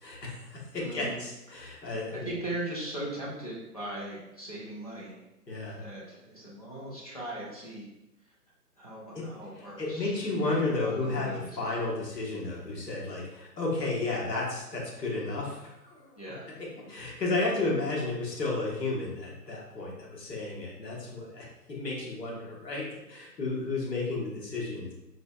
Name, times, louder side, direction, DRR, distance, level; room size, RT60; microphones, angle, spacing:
voice 1, 0.0-2.3 5.5-5.8 9.1-9.2 9.8-11.3 11.6-16.2 16.9-24.9, left 2 dB, 80° left, -4 dB, 1.4 m, -32 dB
voice 2, 0.8-1.2 1.5-1.8 2.1-5.2 5.8-7.9 8.2-8.3 8.8-11.5 16.2-16.5, right 1 dB, 25° left, -6 dB, 0.4 m, -39 dB
4.6 x 2.3 x 2.4 m, 0.92 s
figure-of-eight pair, 145°, 48 cm